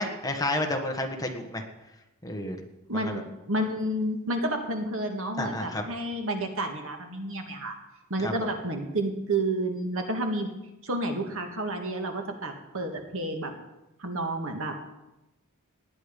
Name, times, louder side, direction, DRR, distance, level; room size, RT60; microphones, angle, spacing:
voice 1, 0.0-1.6 2.2-2.6 2.9-3.2 5.4-5.8 8.2-8.3, left 1 dB, 15° left, 3 dB, 1.6 m, -30 dB
voice 2, 2.9-7.7 8.1-10.6 10.8-13.5 14.0-14.8, right 1 dB, 65° right, 4 dB, 2.0 m, -30 dB
18.5 x 10.0 x 5.4 m, 0.96 s
head